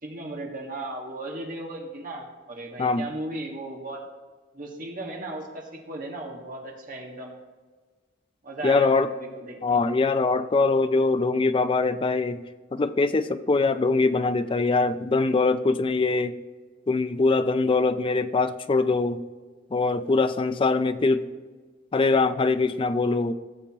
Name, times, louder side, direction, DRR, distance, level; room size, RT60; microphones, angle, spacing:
voice 1, 0.0-4.0 4.5-7.3 8.4-9.8, right 2 dB, 45° right, 0 dB, 1.6 m, -36 dB
voice 2, 8.6-9.1 9.6-12.4 12.7-16.4 16.9-19.2 19.7-21.3 21.9-23.3, left 3 dB, 25° left, 11 dB, 0.4 m, -23 dB
15.5 x 6.8 x 2.9 m, 1.4 s
head